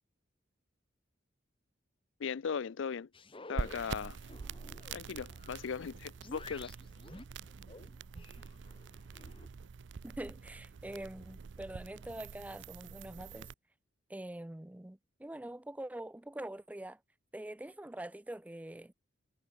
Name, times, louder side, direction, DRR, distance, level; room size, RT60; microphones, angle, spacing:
voice 1, 2.2-3.1 3.5-4.2 4.9-6.7, left 6 dB, 70° left, 0.4 m, -38 dB
sound 1, 3.1-9.5, left 2 dB, 25° left, 1.3 m, -53 dB
sound 2, 3.6-13.5, right 5 dB, 65° right, 0.5 m, -45 dB
voice 2, 10.0-13.5 14.1-17.0 17.3-18.9, right 1 dB, 10° right, 0.4 m, -44 dB
head